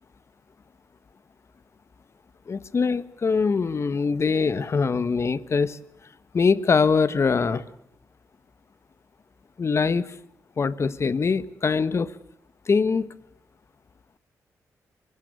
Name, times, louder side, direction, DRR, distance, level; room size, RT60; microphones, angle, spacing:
voice 1, 2.5-5.8 6.3-7.6 9.6-10.0 10.6-12.1 12.7-13.1, left 5 dB, 45° left, 15 dB, 1.3 m, -23 dB
24.0 x 21.0 x 8.3 m, 0.72 s
cardioid pair, 70°, 6 cm